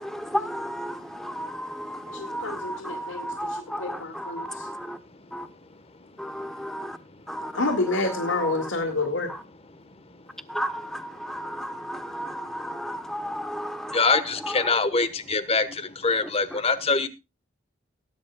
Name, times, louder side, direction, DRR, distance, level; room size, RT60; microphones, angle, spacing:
voice 1, 0.3-1.0 1.2-2.0 2.3-4.7 5.3-5.4 6.3-6.9 7.3-7.5 8.3-8.5 10.5-10.8 11.3-13.9, equal, ahead, 1.0 m, -33 dB
voice 2, 2.1-3.3 3.8-4.5 7.5-9.3, left 2 dB, 85° left, 2.1 m, -28 dB
voice 3, 13.9-15.7 16.0-17.1, left 4 dB, 35° left, 1.3 m, -23 dB
19.0 x 10.5 x 2.3 m
head